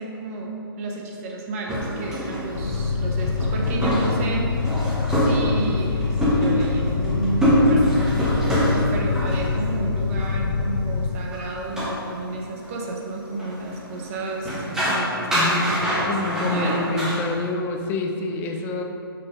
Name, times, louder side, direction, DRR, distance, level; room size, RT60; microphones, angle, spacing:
voice 1, 0.0-4.5 5.1-16.1 16.4-16.8 18.5-18.6, right 2 dB, 35° right, -1 dB, 0.9 m, -31 dB
sound 1, 1.7-9.9 10.2-10.3 11.3-11.4 11.7-12.0 12.6-12.7 13.4-14.1 14.5-17.2, equal, 5° right, 1.2 m, -24 dB
sound 2, 2.6-11.1, left 4 dB, 70° left, 0.6 m, -25 dB
voice 2, 15.3-18.8, left 3 dB, 15° left, 3 dB, 0.4 m, -27 dB
5.9 x 3.8 x 5.1 m, 2.8 s
hypercardioid pair, 140°, 13 cm